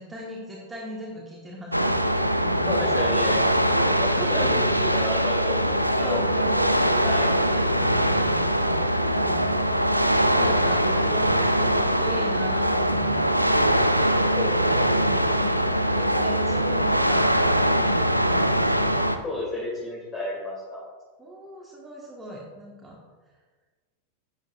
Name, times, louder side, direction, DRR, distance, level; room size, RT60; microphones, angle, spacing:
voice 1, 0.0-2.9 4.1-4.6 6.0-9.6 10.3-13.7 16.0-17.5 17.8-18.0 21.2-23.0, equal, 10° right, -4 dB, 1.6 m, -38 dB
sound 1, 1.7-19.2, equal, 90° right, 0.5 m, -22 dB
voice 2, 2.7-3.4 3.7-4.5 4.8-6.2 7.0-7.3 10.4-10.6 14.3-15.2 19.2-20.8, left 2 dB, 20° left, -6 dB, 2.9 m, -32 dB
11.5 x 8.8 x 2.6 m, 1.4 s
figure-of-eight pair, 90°, 0 cm